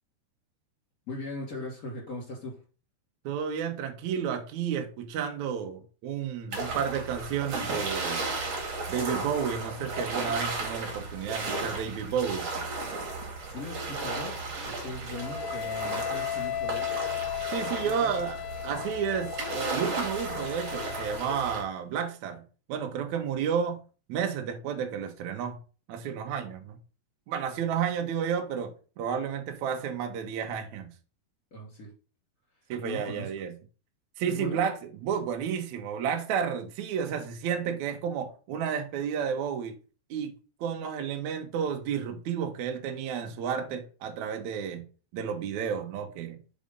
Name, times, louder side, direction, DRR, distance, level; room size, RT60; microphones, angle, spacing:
voice 1, 1.1-2.6 13.4-16.9 17.8-18.1 31.5-31.9 32.8-33.3 34.3-34.6, left 1 dB, 25° left, 2.3 m, -39 dB
voice 2, 3.2-8.3 8.9-12.5 17.5-22.4 22.7-23.8 24.1-25.6 25.9-26.8 27.3-30.9 32.7-33.5 34.2-34.8 35.0-39.8 40.1-40.3 40.6-44.8 45.1-46.4, right 7 dB, 75° right, 1.7 m, -31 dB
sound 1, 6.5-21.6, right 3 dB, 45° right, 2.3 m, -35 dB
Wind instrument woodwind instrument, 15.1-21.3, left 12 dB, 85° left, 2.6 m, -35 dB
5.3 x 4.9 x 5.2 m
omnidirectional pair, 4.8 m